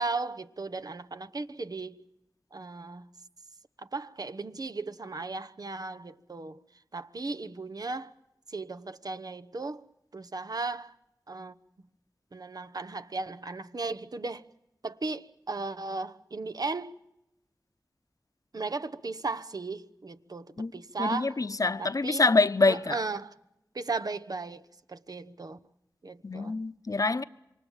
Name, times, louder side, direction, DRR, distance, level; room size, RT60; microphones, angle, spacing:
voice 1, 0.0-2.0 2.5-3.1 3.8-6.6 6.9-8.1 8.5-9.8 10.1-10.9 11.3-11.5 12.3-14.4 14.8-17.0 18.5-21.5 21.8-22.2 22.7-23.3 23.7-25.6 26.0-26.5, right 3 dB, 65° right, 1.0 m, -36 dB
voice 2, 21.0-23.0 26.2-27.2, left 3 dB, 55° left, 0.9 m, -25 dB
27.0 x 24.0 x 7.4 m
wide cardioid pair, 45°, 7 cm